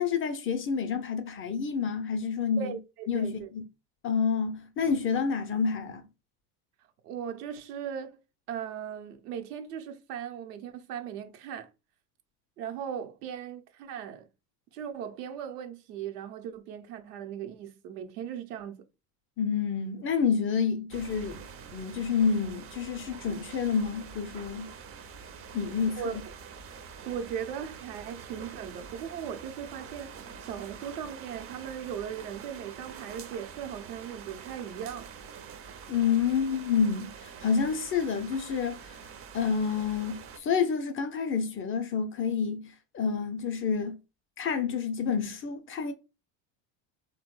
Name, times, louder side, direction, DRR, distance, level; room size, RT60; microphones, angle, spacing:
voice 1, 0.0-2.8 3.1-3.6 4.0-6.0 19.4-21.4 21.7-24.7 25.5-26.2 35.9-39.0 39.3-44.0 44.4-45.9, left 6 dB, 30° left, 0.4 m, -29 dB
voice 2, 2.6-3.5 7.0-8.2 8.5-11.7 12.6-14.3 14.7-18.7 26.0-26.2 27.0-30.1 30.4-35.1, right 8 dB, 80° right, 0.8 m, -38 dB
sound 1, 20.9-40.4, right 6 dB, 30° right, 0.5 m, -46 dB
3.2 x 2.2 x 3.0 m
hypercardioid pair, 95°, 46 cm